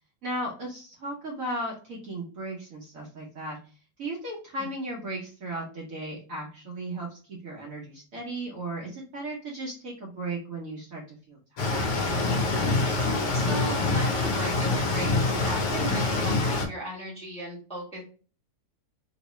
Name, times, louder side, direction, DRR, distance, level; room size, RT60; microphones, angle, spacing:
voice 1, 0.2-3.6 4.0-11.8, right 1 dB, 55° right, -2 dB, 1.0 m, -36 dB
sound 1, 11.6-16.7, left 3 dB, 60° left, 0.8 m, -25 dB
voice 2, 13.3-18.0, equal, 5° left, -4 dB, 0.8 m, -37 dB
3.0 x 2.9 x 3.0 m, 0.38 s
omnidirectional pair, 2.0 m